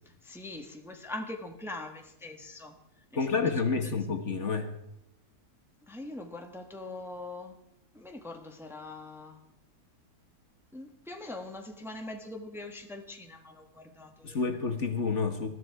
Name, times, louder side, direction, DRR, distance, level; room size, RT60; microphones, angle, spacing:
voice 1, 0.0-2.7 3.1-4.0 5.9-7.6 7.9-9.4 10.7-14.4, left 2 dB, ahead, 3 dB, 1.3 m, -42 dB
voice 2, 3.1-4.7 14.2-15.5, left 4 dB, 50° left, 6 dB, 1.5 m, -29 dB
20.5 x 13.0 x 4.7 m, 0.80 s
omnidirectional pair, 1.7 m